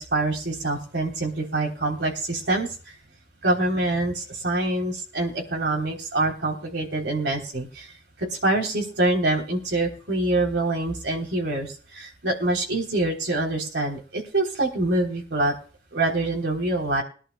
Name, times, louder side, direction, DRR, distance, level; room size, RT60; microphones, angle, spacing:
voice 1, 0.0-2.9 3.4-7.9 8.2-15.5 15.9-17.0, right 2 dB, 75° right, 0 dB, 3.3 m, -25 dB
22.0 x 11.0 x 2.2 m, 0.39 s
head